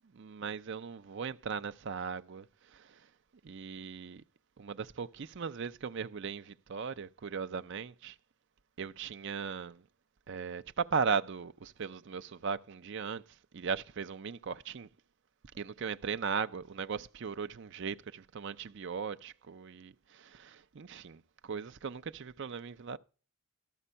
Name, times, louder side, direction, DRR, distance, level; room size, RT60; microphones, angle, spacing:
voice 1, 0.1-2.5 2.7-3.0 3.4-4.2 4.6-8.2 8.8-9.8 10.3-13.2 13.5-14.9 15.5-23.0, right 6 dB, 55° right, 0.5 m, -38 dB
13.0 x 6.0 x 5.5 m
head